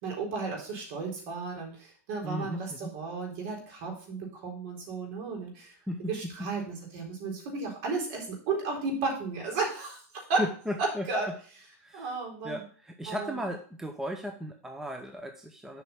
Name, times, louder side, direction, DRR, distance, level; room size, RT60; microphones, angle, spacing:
voice 1, 0.0-5.7 6.0-10.0 10.3-10.4 10.8-11.3 11.9-12.6 13.1-13.3, right 4 dB, 55° right, 0 dB, 3.9 m, -33 dB
voice 2, 2.2-2.9 5.9-6.1 6.4-6.5 10.4-11.1 11.8-12.1 12.4-15.8, equal, 5° right, 4 dB, 0.7 m, -36 dB
7.9 x 5.7 x 5.7 m, 0.43 s
supercardioid pair, 145°, 8 cm